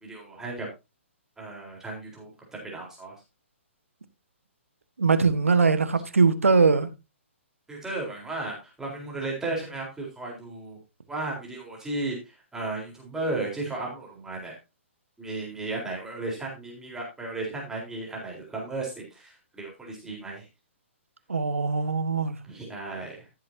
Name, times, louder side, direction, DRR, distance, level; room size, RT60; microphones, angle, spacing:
voice 1, 0.0-0.7 1.4-3.2 7.7-10.8 11.1-14.6 15.2-20.5 22.5-23.3, right 2 dB, 5° right, 4.1 m, -35 dB
voice 2, 5.0-6.9 21.3-22.4, right 4 dB, 85° right, 1.5 m, -21 dB
15.5 x 7.6 x 2.8 m
hypercardioid pair, 130°, 7 cm